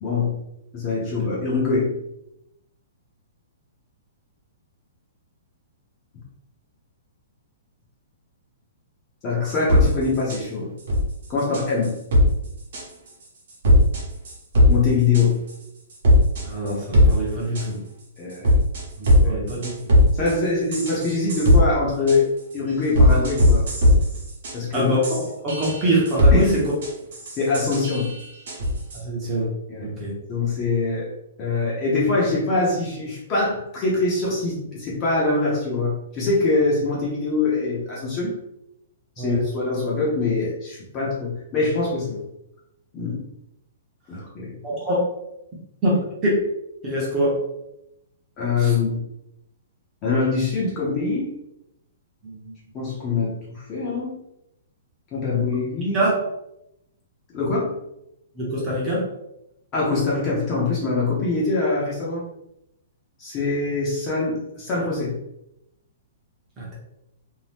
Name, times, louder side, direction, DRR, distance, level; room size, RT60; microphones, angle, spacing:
voice 1, 0.0-0.4 0.7-1.9 9.2-10.7 11.3-12.0 14.7-15.4 18.2-18.5 19.2-19.4 20.1-23.6 24.5-24.9 26.3-26.5 27.4-28.1 29.7-29.9 30.3-31.1 31.4-38.3 39.2-42.2 42.9-43.2 44.1-44.5 48.4-49.0 50.0-51.3 52.7-54.1 55.1-56.1 57.3-57.7 59.7-62.2 63.2-65.1, left 3 dB, 20° left, -5 dB, 0.7 m, -23 dB
sound 1, 9.5-9.9 10.3-10.4 10.9-11.1 11.5-12.3 12.7-13.1 13.6-14.7 15.1-15.5 15.9-17.1 17.6-17.7 18.3-20.3 20.7-21.6 22.1-22.2 22.5-22.6 23.0-29.0, left 1 dB, 55° right, 1.0 m, -18 dB
voice 2, 16.4-17.8 19.0-19.9 24.7-26.7 28.9-29.5 29.8-30.1 39.2-39.5 44.6-45.1 45.8-46.5 46.8-47.5 48.6-48.7 52.2-52.5 55.9-56.1 58.3-59.1 66.6-66.7, right 1 dB, 15° right, -5 dB, 0.7 m, -24 dB
2.7 x 2.1 x 3.3 m, 0.83 s
hypercardioid pair, 175°, 0 cm